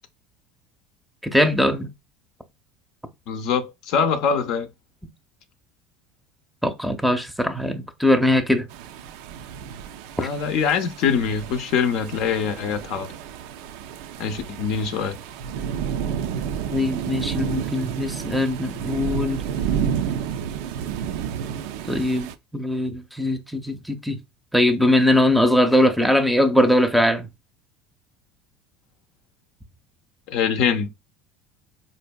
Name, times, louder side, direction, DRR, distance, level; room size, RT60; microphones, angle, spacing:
voice 1, 1.2-1.9 6.6-8.7 10.2-10.3 16.7-19.4 21.9-24.2 24.5-27.3, left 1 dB, ahead, 0.6 m, -21 dB
voice 2, 3.3-4.7 10.2-13.1 14.2-15.2 30.3-30.9, left 6 dB, 65° left, 0.6 m, -23 dB
sound 1, 8.7-22.3, right 8 dB, 75° right, 0.3 m, -31 dB
4.3 x 2.6 x 2.2 m
supercardioid pair, 95°, 0 cm